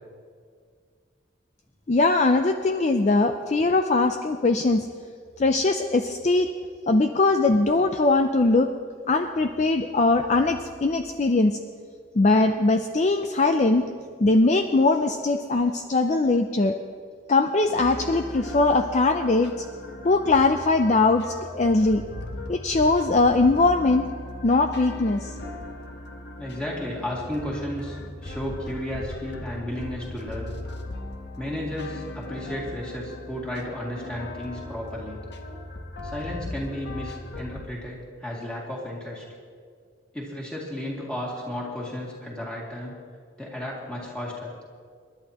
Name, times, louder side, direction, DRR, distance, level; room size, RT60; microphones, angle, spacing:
voice 1, 1.9-4.9 5.4-6.5 6.9-8.7 9.1-11.6 12.1-13.9 14.2-16.8 17.3-19.7 20.0-22.0 22.5-24.1 24.4-25.3, left 3 dB, 35° left, 7 dB, 0.4 m, -21 dB
sound 1, 17.8-37.6, left 2 dB, 55° left, 1.1 m, -38 dB
voice 2, 26.4-30.5 31.4-35.2 36.0-39.2 40.1-43.0 43.4-44.5, left 1 dB, 5° left, -4 dB, 2.3 m, -33 dB
27.0 x 11.0 x 3.0 m, 2.1 s
head